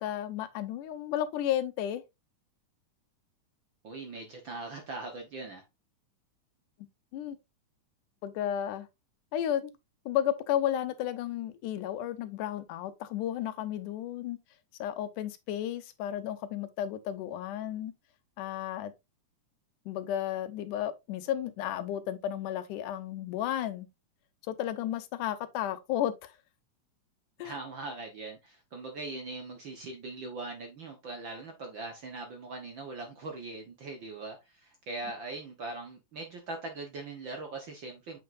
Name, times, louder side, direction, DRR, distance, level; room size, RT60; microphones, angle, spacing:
voice 1, 0.0-2.0 7.1-7.4 8.2-8.9 9.3-9.7 10.1-14.4 14.8-17.9 18.4-18.9 19.9-23.9 24.5-26.3 27.4-27.6, left 11 dB, 85° left, 2.3 m, -33 dB
voice 2, 3.8-5.6 27.4-38.2, right 3 dB, 55° right, 1.3 m, -41 dB
7.6 x 5.7 x 2.5 m
omnidirectional pair, 3.6 m